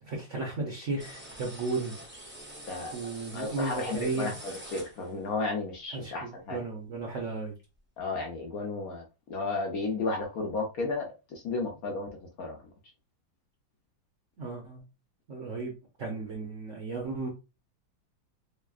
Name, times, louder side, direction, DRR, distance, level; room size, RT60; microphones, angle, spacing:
voice 1, 0.0-1.9 2.9-4.4 5.9-7.5 14.4-14.8 15.3-15.7 16.0-17.3, right 3 dB, 60° right, 0 dB, 0.8 m, -34 dB
sound 1, 1.0-5.3, right 1 dB, 10° right, 0.8 m, -46 dB
voice 2, 3.3-6.6 8.0-9.0 9.3-12.1 12.4-12.6, left 3 dB, 60° left, 1 dB, 1.0 m, -33 dB
3.6 x 3.3 x 2.4 m, 0.29 s
omnidirectional pair, 2.1 m